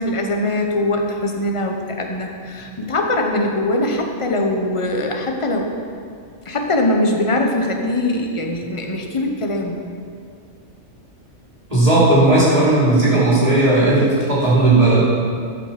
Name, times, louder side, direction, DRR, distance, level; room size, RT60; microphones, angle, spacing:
voice 1, 0.0-5.7 6.4-9.8, left 1 dB, 25° left, 2 dB, 0.9 m, -21 dB
voice 2, 11.7-15.1, right 2 dB, 25° right, -9 dB, 3.1 m, -15 dB
13.0 x 5.9 x 5.9 m, 2.2 s
omnidirectional pair, 1.5 m